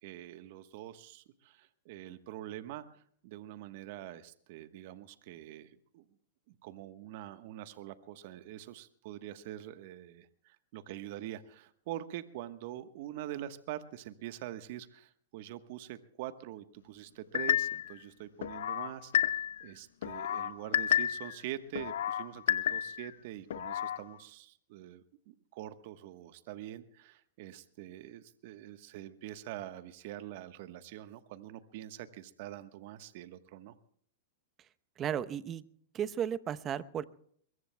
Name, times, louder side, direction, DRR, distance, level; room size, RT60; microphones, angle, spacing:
voice 1, 0.0-6.0 6.5-33.8, right 13 dB, 55° right, 11 dB, 1.2 m, -45 dB
sound 1, 17.3-17.9 18.4-19.6 20.0-21.3 21.8-23.1 23.5-24.0, left 10 dB, 75° left, 0.7 m, -31 dB
voice 2, 35.0-35.6 35.9-37.0, right 9 dB, 30° right, 14 dB, 0.8 m, -34 dB
23.0 x 22.0 x 2.3 m, 0.62 s
hypercardioid pair, 120°, 0 cm